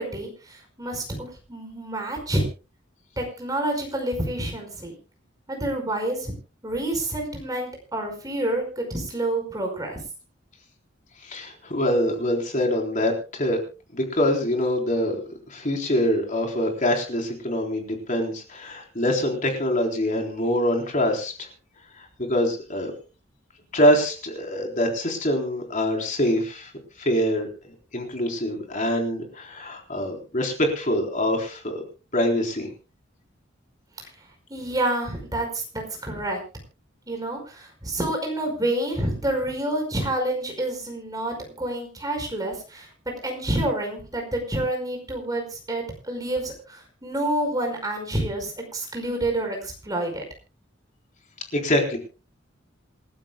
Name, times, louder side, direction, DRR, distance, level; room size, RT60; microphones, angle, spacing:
voice 1, 0.0-2.5 3.2-4.9 5.5-6.3 6.6-10.0 34.0-34.1 34.5-36.4 37.1-42.9 43.2-50.2, right 1 dB, 20° right, 3 dB, 5.2 m, -28 dB
voice 2, 11.2-13.6 13.9-15.2 15.5-21.5 22.0-22.9 23.7-26.7 27.0-31.8 32.1-32.7 51.5-52.0, equal, 40° left, 2 dB, 3.8 m, -24 dB
28.0 x 12.5 x 2.3 m, 0.33 s
head